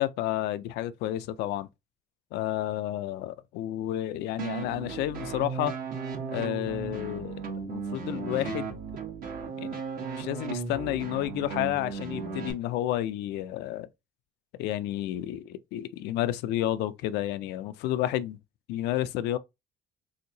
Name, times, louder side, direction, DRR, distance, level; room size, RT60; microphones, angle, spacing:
voice 1, 0.0-1.7 2.3-5.8 6.3-8.8 9.6-9.8 10.2-13.9 14.6-18.4 18.7-19.4, left 13 dB, 85° left, 0.4 m, -31 dB
sound 1, 4.4-12.5, right 5 dB, 60° right, 1.1 m, -36 dB
3.5 x 2.8 x 2.6 m
cardioid pair, 110°, 17 cm